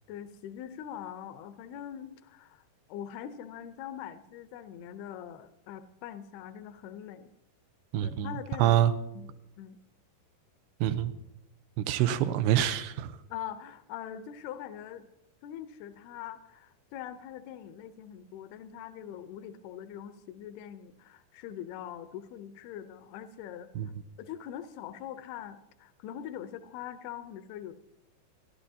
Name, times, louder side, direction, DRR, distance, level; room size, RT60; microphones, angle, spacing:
voice 1, 0.1-7.3 8.0-8.8 9.1-9.3 9.6-9.8 13.3-15.1 15.4-23.9 24.2-27.7, left 10 dB, 80° left, 9 dB, 2.6 m, -43 dB
voice 2, 7.9-8.9 10.8-11.1 11.8-13.1 23.8-23.9, right 11 dB, 85° right, 11 dB, 2.8 m, -26 dB
28.5 x 11.5 x 2.8 m, 0.88 s
omnidirectional pair, 4.7 m